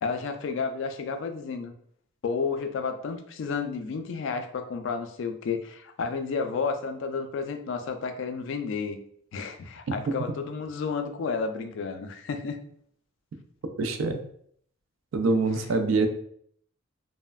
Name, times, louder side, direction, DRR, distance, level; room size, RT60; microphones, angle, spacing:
voice 1, 0.0-1.7 2.2-9.0 9.3-12.6, left 5 dB, 65° left, 7 dB, 0.3 m, -31 dB
voice 2, 13.8-14.2 15.1-16.1, right 3 dB, 80° right, 7 dB, 0.4 m, -24 dB
3.1 x 2.0 x 2.3 m, 0.64 s
head